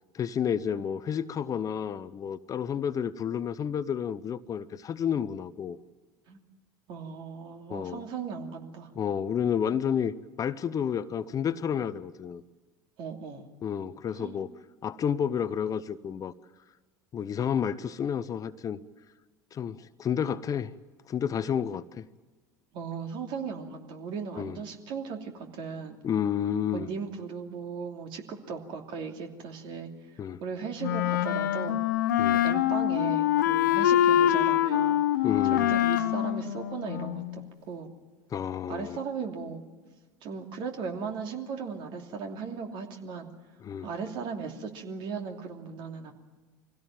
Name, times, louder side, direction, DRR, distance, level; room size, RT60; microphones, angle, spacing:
voice 1, 0.1-5.8 7.7-8.0 8.9-12.4 13.6-14.5 14.8-16.3 17.1-18.8 19.5-20.7 21.1-22.1 24.4-24.6 26.0-26.9 30.2-30.4 32.2-32.4 35.2-35.7 38.3-39.0 43.6-43.9, left 8 dB, 35° left, 15 dB, 0.8 m, -30 dB
voice 2, 6.9-8.9 13.0-13.5 14.1-14.4 22.7-26.0 26.7-29.9 30.4-31.8 32.3-35.0 35.5-37.9 38.7-39.6 40.2-43.3 43.8-46.1, right 5 dB, 55° right, 3 dB, 2.9 m, -37 dB
Wind instrument woodwind instrument, 30.8-37.4, left 11 dB, 80° left, 0.9 m, -25 dB
24.0 x 16.5 x 9.0 m, 1.3 s
hypercardioid pair, 75°, 10 cm